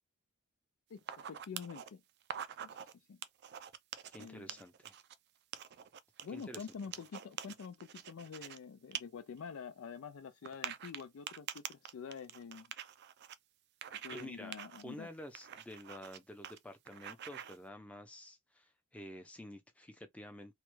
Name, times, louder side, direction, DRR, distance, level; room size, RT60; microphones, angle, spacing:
voice 1, 0.9-2.0 2.6-3.2 4.2-4.5 6.2-12.7 13.9-15.1, left 6 dB, 70° left, 0.4 m, -47 dB
sound 1, 1.0-1.9 2.2-2.9 3.2-5.1 5.5-8.6 8.9-9.0 9.4-9.5 10.5-13.4 13.8-14.3 14.5-14.8 15.4-16.2 16.4-16.6 16.9-17.6, right 9 dB, 50° right, 0.4 m, -45 dB
voice 2, 4.1-5.0 6.3-6.7 14.1-14.5 14.8-20.6, equal, 5° left, 0.5 m, -50 dB
3.1 x 2.3 x 3.0 m
head